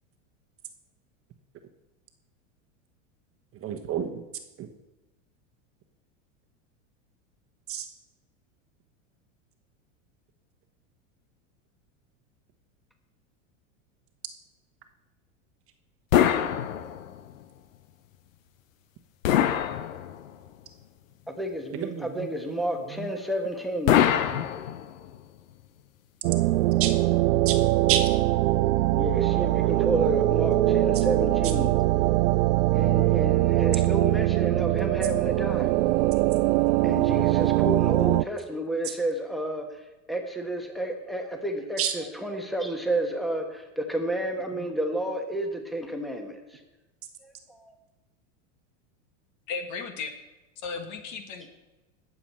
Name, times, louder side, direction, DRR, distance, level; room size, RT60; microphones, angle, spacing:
voice 1, 3.5-4.2 4.6-4.7 7.7-7.9 21.7-23.1 23.9-24.4 26.8-26.9 27.4-27.6 27.9-28.0 30.9-31.0 31.4-31.5 32.0-32.1 34.5-34.9 35.2-35.3 37.3-37.6 38.8-38.9 41.8-41.9 44.5-44.7, right 9 dB, 35° right, 5 dB, 1.1 m, -32 dB
sound 1, 16.1-17.3 19.2-20.5 23.9-25.2, left 10 dB, 90° left, 0.9 m, -24 dB
voice 2, 21.3-24.0 28.9-31.7 32.7-35.7 36.8-39.8 40.1-46.6 47.2-47.7, right 1 dB, ahead, 4 dB, 1.4 m, -31 dB
sound 2, 26.2-38.2, right 17 dB, 75° right, 0.5 m, -22 dB
voice 3, 49.5-50.1 50.6-51.5, left 5 dB, 50° left, 6 dB, 1.8 m, -35 dB
18.5 x 7.2 x 4.5 m, 1.1 s
supercardioid pair, 120°, 38 cm